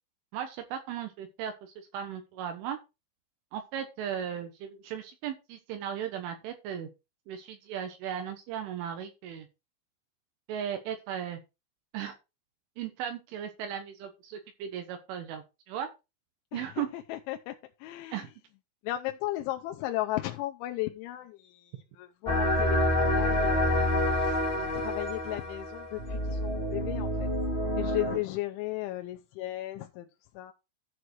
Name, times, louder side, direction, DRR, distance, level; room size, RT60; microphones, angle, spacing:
voice 1, 0.3-2.8 3.5-6.9 7.3-9.5 10.5-11.4 11.9-12.2 12.8-15.9 16.5-16.9 18.1-18.3, right 9 dB, 75° right, 3.5 m, -36 dB
voice 2, 16.5-17.5 17.8-18.2 18.8-23.9 24.2-27.3 27.8-30.1 30.3-30.5, left 16 dB, 80° left, 2.9 m, -36 dB
sound 1, 22.3-28.2, left 1 dB, 20° left, 1.7 m, -28 dB
13.5 x 4.7 x 4.6 m
omnidirectional pair, 5.8 m